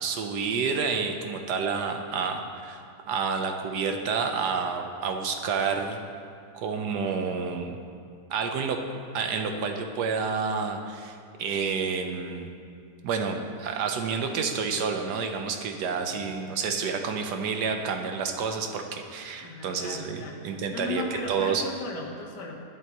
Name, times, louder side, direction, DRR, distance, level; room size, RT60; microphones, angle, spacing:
voice 1, 0.0-6.0 6.5-7.8 8.3-8.8 9.1-12.5 13.0-21.0 21.3-21.6, right 5 dB, 80° right, 4 dB, 1.4 m, -29 dB
voice 2, 19.4-20.4 20.7-22.5, left 2 dB, 80° left, -2 dB, 1.9 m, -36 dB
12.5 x 11.5 x 3.0 m, 2.3 s
omnidirectional pair, 1.8 m